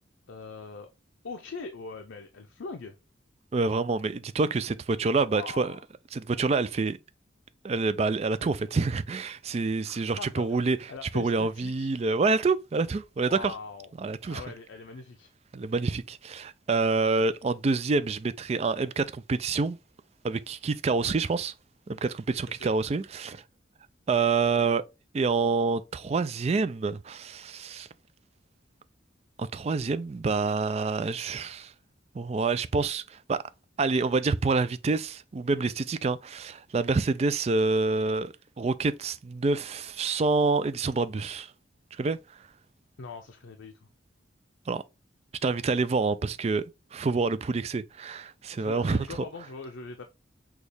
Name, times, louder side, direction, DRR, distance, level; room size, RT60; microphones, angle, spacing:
voice 1, 0.3-0.9 1.2-3.0 5.3-5.8 9.8-11.9 13.2-13.9 14.3-15.3 22.6-22.7 43.0-43.7 48.6-50.1, left 4 dB, 85° left, 0.6 m, -41 dB
voice 2, 3.5-5.7 6.1-7.0 7.6-10.8 11.0-13.5 14.0-14.4 15.5-19.8 20.2-21.5 21.9-23.4 24.1-24.8 25.1-27.9 29.4-31.7 32.1-33.4 33.8-41.5 42.0-42.2 44.7-44.8 45.4-46.6 46.9-49.2, right 4 dB, 35° right, 0.3 m, -27 dB
6.2 x 2.4 x 3.3 m
head